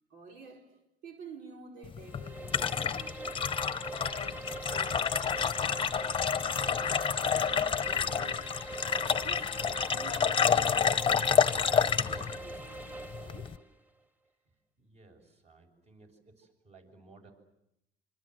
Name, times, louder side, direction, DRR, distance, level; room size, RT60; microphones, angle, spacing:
voice 1, 0.1-3.4 3.9-8.5 9.2-13.5, right 4 dB, 90° right, 2 dB, 5.0 m, -51 dB
sound 1, 1.8-13.6, left 7 dB, 30° left, 0.9 m, -29 dB
sound 2, 2.0-13.6, right 2 dB, 10° right, 2.1 m, -43 dB
voice 2, 14.8-17.3, right 3 dB, 40° right, 5 dB, 6.7 m, -58 dB
26.5 x 26.5 x 7.9 m, 0.83 s
cardioid pair, 110°, 17 cm